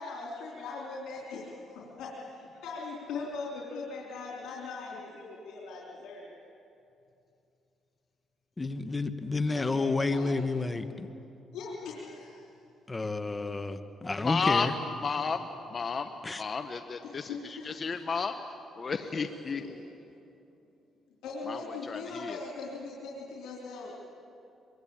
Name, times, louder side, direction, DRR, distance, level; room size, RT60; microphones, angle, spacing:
voice 1, 0.0-6.3 9.5-10.3 11.5-12.5 13.3-13.4 13.6-13.7 14.3-14.4 17.0-17.8 18.8-19.8 21.2-24.0, left 3 dB, 85° left, -3 dB, 3.6 m, -40 dB
voice 2, 8.6-11.1 12.9-14.7 16.2-16.4, left 3 dB, 20° left, 9 dB, 1.3 m, -30 dB
voice 3, 14.2-14.7 15.0-16.1 16.4-18.4 18.8-19.6 21.5-21.6 21.9-22.4, left 5 dB, 40° left, 8 dB, 1.1 m, -32 dB
24.5 x 22.5 x 8.9 m, 2.7 s
cardioid pair, 90°, 0 cm